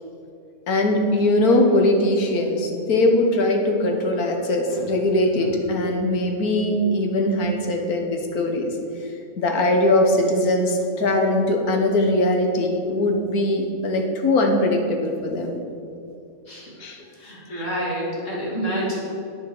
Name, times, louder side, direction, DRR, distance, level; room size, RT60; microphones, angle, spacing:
voice 1, 0.7-8.7 9.0-9.1 9.4-15.6 16.8-17.1 17.5-17.7, left 1 dB, 70° left, 3 dB, 1.7 m, -21 dB
voice 2, 17.2-19.0, right 1 dB, 55° left, -5 dB, 2.9 m, -28 dB
9.3 x 7.3 x 6.4 m, 2.6 s
omnidirectional pair, 1.6 m